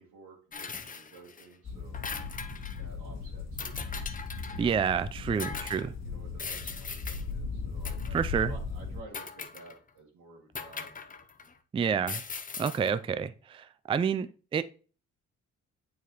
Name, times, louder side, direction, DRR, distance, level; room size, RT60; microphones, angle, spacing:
voice 1, 0.0-2.0 2.8-3.7 4.5-4.8 5.2-8.2 8.5-10.9, right 3 dB, 90° right, 2.0 m, -52 dB
sound 1, 0.5-1.5 1.8-2.8 3.6-4.7 5.4-5.9 6.4-7.2 7.8-8.3 9.1-9.9 10.6-11.5 12.0-12.9, left 5 dB, 25° left, 0.7 m, -40 dB
sound 2, 1.6-9.0, left 4 dB, 60° left, 1.8 m, -38 dB
voice 2, 4.6-5.9 8.1-8.5 11.7-12.2 12.6-14.6, right 6 dB, 20° right, 0.3 m, -29 dB
8.2 x 4.7 x 3.0 m
cardioid pair, 90°, 30 cm